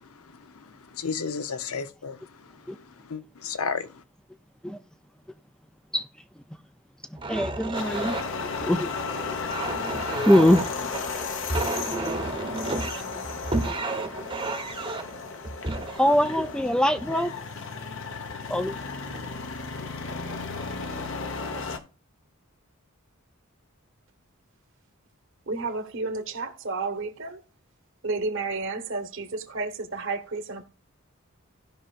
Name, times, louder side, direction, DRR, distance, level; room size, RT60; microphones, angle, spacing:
voice 1, 0.0-4.0, left 5 dB, 80° left, 0.7 m, -34 dB
sound 1, 7.2-17.4 18.1-18.3 18.8-19.2, right 2 dB, 25° right, 0.9 m, -32 dB
voice 2, 7.3-8.2 8.6-8.9 10.3-10.6 11.9-12.0 13.7-13.8 16.0-17.3 18.5-18.7, equal, 5° left, 0.4 m, -22 dB
sound 2, 7.7-21.8, left 4 dB, 60° left, 1.1 m, -34 dB
voice 3, 25.5-27.4 28.0-30.6, right 3 dB, 60° right, 1.2 m, -31 dB
16.5 x 5.7 x 2.5 m
head